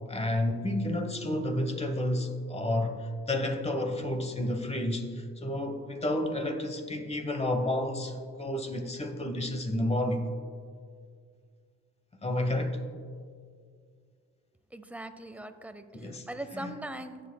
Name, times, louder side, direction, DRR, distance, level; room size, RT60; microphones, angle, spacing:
voice 1, 0.1-10.2 12.2-12.8 15.9-16.3 16.5-16.8, left 1 dB, 20° left, 1.0 m, -31 dB
voice 2, 14.7-17.2, right 1 dB, 5° right, 0.6 m, -40 dB
18.0 x 7.4 x 2.2 m
cardioid pair, 90°, 30 cm